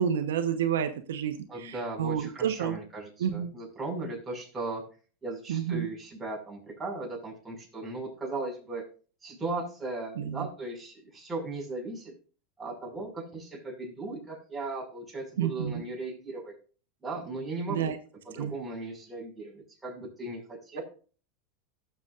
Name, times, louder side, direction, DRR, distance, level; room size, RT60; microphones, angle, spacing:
voice 1, 0.0-2.8 3.2-3.5 5.5-5.9 10.2-10.5 15.4-15.8 17.7-18.0 18.4-18.5, right 9 dB, 90° right, 8 dB, 1.0 m, -29 dB
voice 2, 1.5-4.8 5.2-8.8 9.2-12.1 12.6-16.5 17.0-17.9 18.2-20.8, right 2 dB, 10° right, -3 dB, 5.6 m, -37 dB
17.5 x 7.0 x 2.5 m, 0.38 s
supercardioid pair, 120°, 0 cm